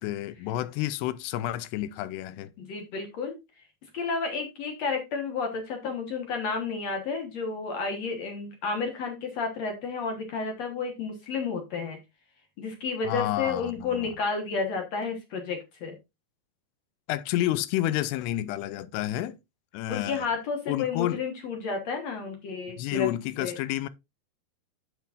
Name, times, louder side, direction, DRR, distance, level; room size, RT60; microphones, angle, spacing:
voice 1, 0.0-2.5 13.1-14.1 17.1-19.4 19.7-20.3 20.7-21.2 22.8-23.9, left 14 dB, 80° left, 2.6 m, -30 dB
voice 2, 2.6-3.4 3.9-12.0 12.6-16.0 19.9-23.1 23.4-23.6, left 4 dB, 60° left, 1.8 m, -31 dB
9.3 x 7.4 x 2.5 m
omnidirectional pair, 4.8 m